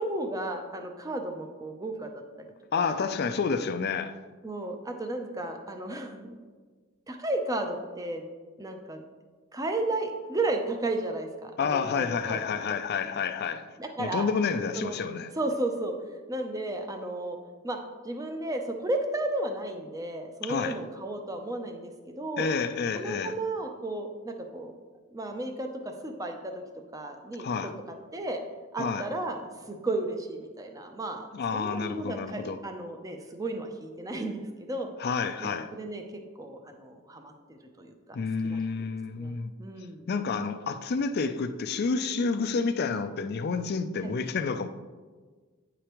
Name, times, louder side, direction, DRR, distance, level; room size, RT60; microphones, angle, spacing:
voice 1, 0.0-2.1 2.4-2.5 2.8-2.9 4.4-6.4 7.1-8.2 8.6-9.0 9.5-12.4 13.8-14.3 14.8-15.0 15.4-16.0 16.3-17.4 17.6-17.8 18.0-22.5 22.9-24.7 25.1-26.5 26.9-27.5 28.1-28.4 28.7-31.3 31.5-34.9 35.4-36.0 36.4-37.9 38.5-38.6 39.2-40.1 44.0-44.1, right 2 dB, 15° right, 0.5 m, -33 dB
voice 2, 2.7-4.2 11.6-13.7 14.0-15.3 20.4-20.8 22.4-23.4 27.4-27.7 28.8-29.0 31.3-32.6 35.0-35.7 38.1-39.5 40.1-44.7, left 5 dB, 50° left, 0.4 m, -29 dB
9.1 x 4.9 x 3.0 m
head